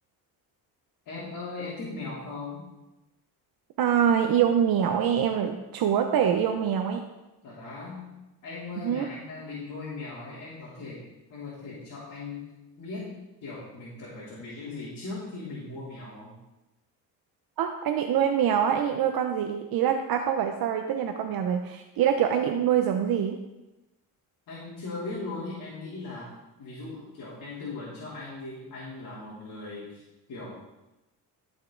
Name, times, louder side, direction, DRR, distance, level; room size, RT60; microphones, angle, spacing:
voice 1, 1.0-2.6 7.4-12.5 12.8-16.3 24.5-26.3 26.6-30.0 30.3-30.6, left 3 dB, 55° left, -8 dB, 3.4 m, -39 dB
voice 2, 3.8-7.0 8.8-9.1 17.6-23.4, right 8 dB, 65° right, 5 dB, 0.8 m, -25 dB
14.5 x 5.4 x 3.9 m, 1.0 s
cardioid pair, 120°, 39 cm